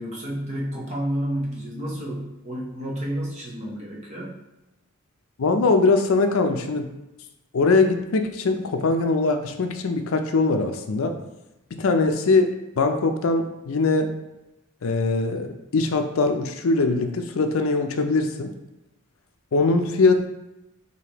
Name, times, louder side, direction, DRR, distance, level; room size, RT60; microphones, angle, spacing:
voice 1, 0.0-4.4, equal, 35° right, -4 dB, 0.9 m, -30 dB
voice 2, 5.4-6.9 7.5-11.2 11.8-14.1 14.8-18.5 19.5-20.3, left 3 dB, 70° left, 6 dB, 0.5 m, -21 dB
4.9 x 2.8 x 2.9 m, 0.94 s
head